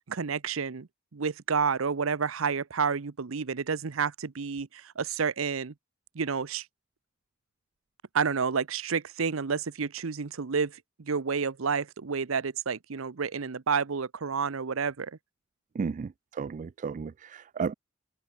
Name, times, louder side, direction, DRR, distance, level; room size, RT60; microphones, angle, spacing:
voice 1, 0.1-0.9 1.1-5.7 6.1-6.6 8.1-15.1, right 5 dB, 85° right, 0.7 m, -30 dB
voice 2, 15.8-16.1 16.4-17.7, right 5 dB, 40° right, 0.3 m, -33 dB
open air
head